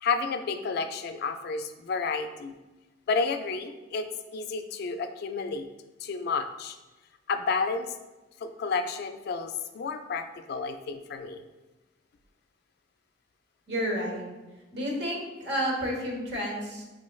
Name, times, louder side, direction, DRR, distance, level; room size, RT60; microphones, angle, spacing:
voice 1, 0.0-2.5 3.1-5.7 6.0-6.8 7.3-8.0 8.4-11.4, left 4 dB, 60° left, 8 dB, 0.3 m, -31 dB
voice 2, 13.7-14.3 14.7-16.8, equal, 65° right, 0 dB, 1.0 m, -30 dB
5.5 x 3.1 x 2.3 m, 1.1 s
head